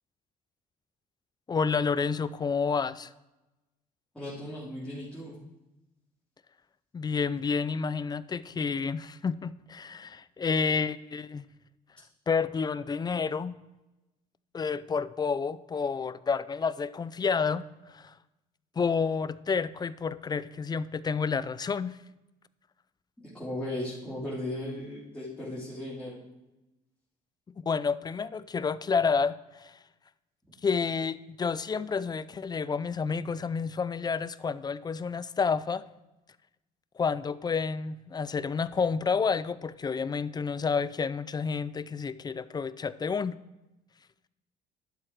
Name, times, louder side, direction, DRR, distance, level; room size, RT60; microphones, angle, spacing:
voice 1, 1.5-3.1 6.9-11.4 12.3-13.5 14.5-17.6 17.9-18.1 18.8-22.0 27.7-29.8 30.6-35.8 37.0-43.3, left 5 dB, 25° left, 16 dB, 0.4 m, -29 dB
voice 2, 4.1-5.4 23.2-26.2, left 1 dB, 5° left, -9 dB, 3.2 m, -36 dB
11.5 x 7.7 x 4.7 m, 1.0 s
cardioid pair, 110°, 17 cm